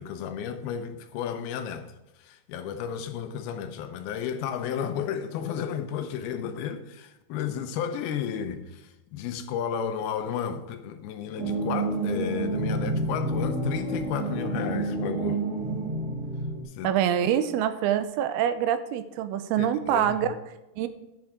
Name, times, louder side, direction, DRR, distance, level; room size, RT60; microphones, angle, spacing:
voice 1, 0.0-1.9 2.2-15.4 16.7-17.0 19.6-20.3, left 8 dB, 80° left, 2.7 m, -33 dB
sound 1, 11.4-16.6, right 2 dB, 30° right, 2.6 m, -29 dB
voice 2, 16.8-20.4 20.8-20.9, right 10 dB, 85° right, 2.6 m, -25 dB
10.5 x 7.1 x 4.9 m
omnidirectional pair, 4.5 m